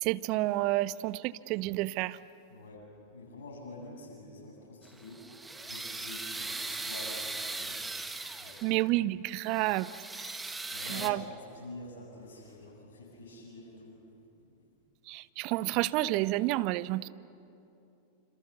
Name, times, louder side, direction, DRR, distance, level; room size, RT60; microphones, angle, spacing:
voice 1, 0.0-2.2 8.6-9.9 10.9-11.2 15.1-17.1, right 17 dB, 40° right, 18 dB, 0.6 m, -29 dB
voice 2, 2.5-2.8 3.1-5.2 5.6-7.8 8.4-8.6 10.7-14.0 14.4-14.5, left 2 dB, 65° left, -1 dB, 7.7 m, -47 dB
sound 1, 4.9-8.8 9.3-11.1, right 3 dB, 10° right, 1.4 m, -39 dB
27.0 x 27.0 x 7.0 m, 2.7 s
figure-of-eight pair, 90°, 0 cm